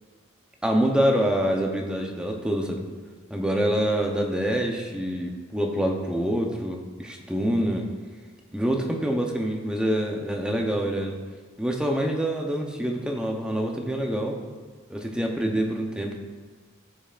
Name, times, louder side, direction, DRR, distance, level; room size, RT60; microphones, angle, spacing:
voice 1, 0.6-2.8 3.3-7.9 8.5-11.1 11.6-14.4 14.9-16.1, equal, 5° right, 1 dB, 0.7 m, -26 dB
14.5 x 5.3 x 2.5 m, 1.5 s
head